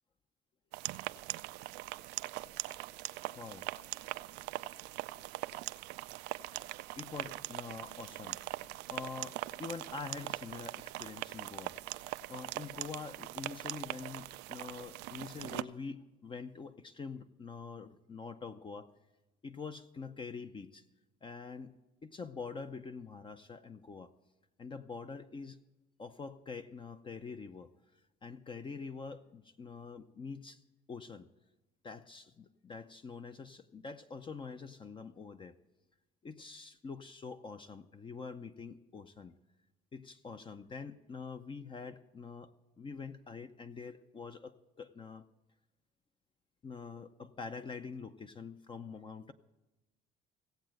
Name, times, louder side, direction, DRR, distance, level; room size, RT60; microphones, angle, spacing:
sound 1, 0.7-15.6, right 18 dB, 90° right, 0.4 m, -41 dB
voice 1, 3.4-3.7 7.0-8.4 8.9-11.8 12.1-18.9 19.4-20.9 21.2-21.8 22.0-24.1 24.6-25.6 26.0-27.7 28.2-30.6 30.9-31.3 31.8-35.6 36.2-39.4 39.9-45.3 46.6-49.3, left 5 dB, 30° left, 9 dB, 0.6 m, -45 dB
16.5 x 7.8 x 7.6 m, 1.1 s
cardioid pair, 110°, 17 cm